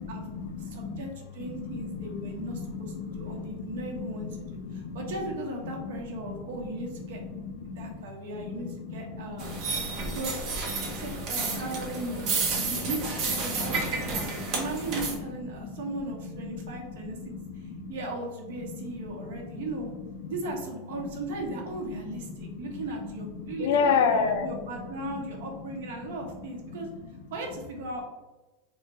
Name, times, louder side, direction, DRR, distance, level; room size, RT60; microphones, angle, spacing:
voice 1, 0.1-1.1 1.4-3.7 4.0-5.0 6.3-6.4 7.2-8.0 8.4-10.2 10.8-11.1 12.2-12.7 13.6-13.7 14.3-14.6 15.6-15.7 16.4-17.9 18.7-19.6 20.2-20.3 22.2-22.7 23.4-24.5 26.7-26.8, left 6 dB, 65° left, 7 dB, 0.4 m, -33 dB
voice 2, 0.6-7.2 7.6-9.5 10.0-19.9 20.3-26.9 27.3-28.0, right 2 dB, 70° right, 1 dB, 0.9 m, -37 dB
sound 1, 9.4-15.2, right 4 dB, 30° right, 0.6 m, -31 dB
3.1 x 2.1 x 4.2 m, 1.1 s
supercardioid pair, 175°, 0 cm